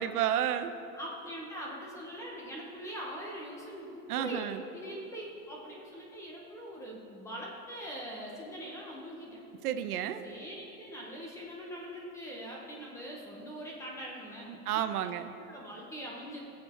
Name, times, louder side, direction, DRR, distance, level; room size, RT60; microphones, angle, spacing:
voice 1, 0.0-0.7 4.1-4.6 9.6-10.2 14.7-15.3, right 10 dB, 75° right, 10 dB, 0.8 m, -31 dB
voice 2, 0.9-9.4 10.2-14.8 15.4-16.4, equal, 5° left, -3 dB, 0.7 m, -42 dB
19.0 x 7.6 x 4.2 m, 2.9 s
supercardioid pair, 175°, 45 cm